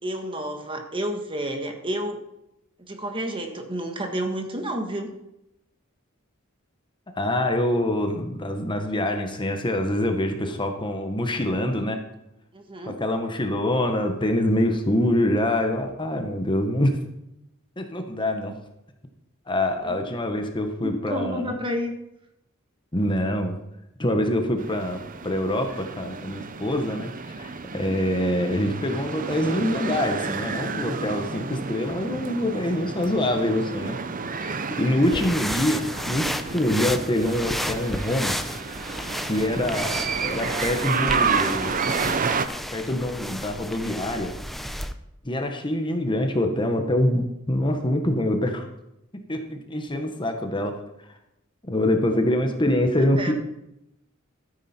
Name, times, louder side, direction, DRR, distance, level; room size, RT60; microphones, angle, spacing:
voice 1, 0.0-2.2 2.8-5.1 12.5-13.0 19.8-20.1 20.8-21.9 27.8-27.9 34.7-35.2 53.0-53.3, equal, 25° right, 5 dB, 1.5 m, -31 dB
voice 2, 7.1-12.0 12.8-17.0 17.8-18.5 19.5-21.5 22.9-23.6 24.0-34.0 34.3-38.3 39.3-42.1 42.7-44.3 45.2-48.7 49.3-50.7 51.0-51.1 51.6-53.3, left 1 dB, 25° left, 5 dB, 1.3 m, -25 dB
sound 1, 24.6-42.5, right 5 dB, 40° right, 0.7 m, -30 dB
sound 2, 35.0-44.9, equal, ahead, 0.6 m, -32 dB
13.0 x 10.0 x 4.4 m, 0.84 s
head